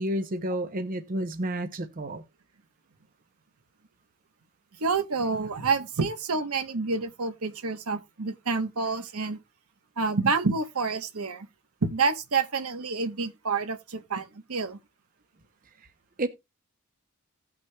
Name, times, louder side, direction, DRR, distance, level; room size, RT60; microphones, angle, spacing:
voice 1, 0.0-2.2 16.2-16.3, right 1 dB, 40° right, 0.7 m, -30 dB
voice 2, 4.8-9.4 10.0-11.5 11.8-14.8, right 4 dB, 80° right, 1.0 m, -28 dB
17.5 x 6.0 x 2.2 m
head